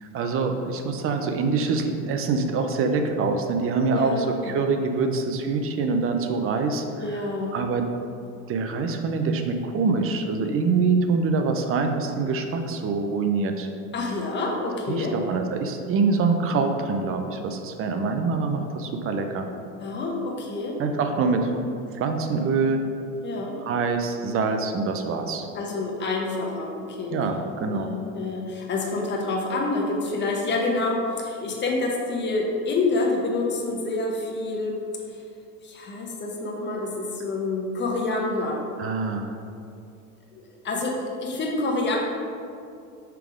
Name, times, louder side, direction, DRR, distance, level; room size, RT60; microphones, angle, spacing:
voice 1, 0.0-7.2 7.5-7.9 8.5-13.7 14.9-19.5 20.8-21.5 21.9-22.8 23.6-25.5 27.1-27.9 38.8-39.3, right 4 dB, 35° right, 6 dB, 0.6 m, -25 dB
voice 2, 3.9-4.6 7.0-7.5 13.9-15.1 19.8-20.8 23.2-23.6 25.5-34.8 35.1-35.2 35.6-38.6 40.4-42.0, left 3 dB, 30° left, -1 dB, 1.2 m, -28 dB
5.9 x 3.5 x 4.8 m, 2.5 s
supercardioid pair, 115°, 38 cm